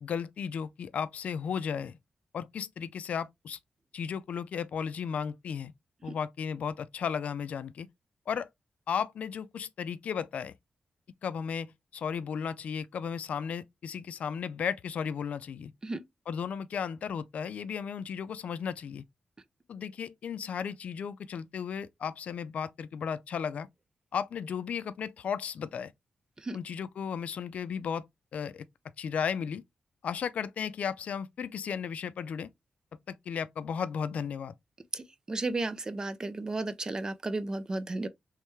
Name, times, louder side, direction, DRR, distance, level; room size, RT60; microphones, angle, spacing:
voice 1, 0.0-2.0 2.3-3.6 3.9-5.7 6.0-7.9 8.3-8.5 8.9-10.5 11.2-15.7 16.3-19.0 19.7-23.7 24.1-25.9 26.5-28.6 29.0-29.6 30.0-32.5 33.1-34.5, left 7 dB, 75° left, 0.4 m, -35 dB
voice 2, 34.9-38.1, right 2 dB, 30° right, 0.5 m, -33 dB
3.4 x 3.1 x 3.1 m
cardioid pair, 95°, 2 cm